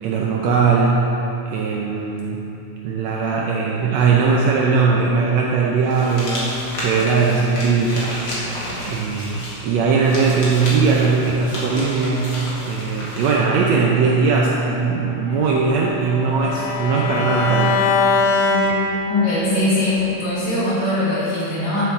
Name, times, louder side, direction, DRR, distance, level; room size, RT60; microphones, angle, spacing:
voice 1, 0.0-1.1 1.5-2.5 2.8-6.5 6.8-8.3 8.8-17.8, right 5 dB, 75° right, -2 dB, 1.7 m, -19 dB
sound 1, 5.9-13.4, left 1 dB, 40° left, 2.2 m, -31 dB
Bowed string instrument, 15.3-19.5, left 4 dB, 85° left, 2.3 m, -22 dB
voice 2, 19.1-21.8, left 2 dB, 60° left, -9 dB, 3.6 m, -21 dB
11.5 x 7.7 x 3.6 m, 3.0 s
omnidirectional pair, 3.6 m